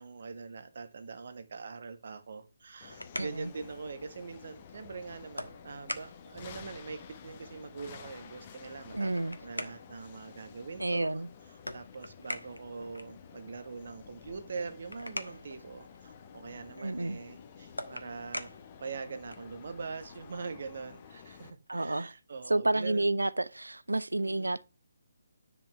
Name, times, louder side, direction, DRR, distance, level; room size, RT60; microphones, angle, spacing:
voice 1, 0.0-9.1 9.4-11.2 11.5-18.5 18.8-23.1 24.2-24.5, right 4 dB, 50° right, 1.4 m, -43 dB
sound 1, 2.5-19.6, left 1 dB, 90° left, 1.3 m, -46 dB
sound 2, 2.8-21.5, left 7 dB, 30° left, 1.2 m, -52 dB
voice 2, 3.2-3.5 8.9-9.4 10.8-11.3 16.8-17.2 21.7-22.1 22.5-24.6, right 2 dB, 75° right, 0.6 m, -30 dB
10.5 x 6.0 x 3.3 m
figure-of-eight pair, 145°, 0 cm